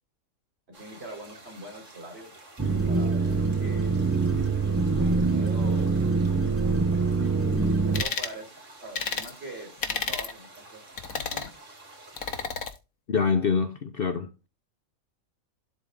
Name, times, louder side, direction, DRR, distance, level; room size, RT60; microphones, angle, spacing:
sound 1, 0.7-12.5, right 2 dB, 65° right, 2.7 m, -50 dB
voice 1, 0.8-2.3 2.9-3.3 3.6-4.0 4.8-6.1 7.9-8.5 8.8-10.8 11.1-11.4, right 2 dB, 45° right, 4.5 m, -43 dB
sound 2, 2.6-8.0, right 4 dB, 20° right, 0.4 m, -24 dB
sound 3, 7.9-8.3 8.9-9.3 9.8-10.3 11.0-11.5 12.2-12.7, left 6 dB, 90° left, 1.7 m, -31 dB
voice 2, 13.1-14.5, left 5 dB, 50° left, 0.9 m, -25 dB
12.0 x 4.1 x 3.6 m
omnidirectional pair, 1.4 m